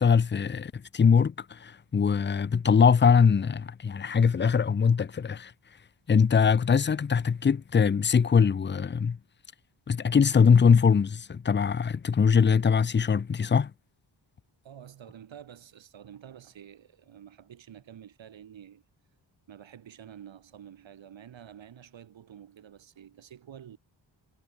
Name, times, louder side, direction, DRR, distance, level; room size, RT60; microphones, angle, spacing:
voice 1, 0.0-5.5 6.1-9.2 9.9-13.7, left 6 dB, 25° left, 0.6 m, -22 dB
voice 2, 14.6-18.8 19.5-23.8, right 9 dB, 75° right, 2.3 m, -49 dB
cardioid pair, 65°, 46 cm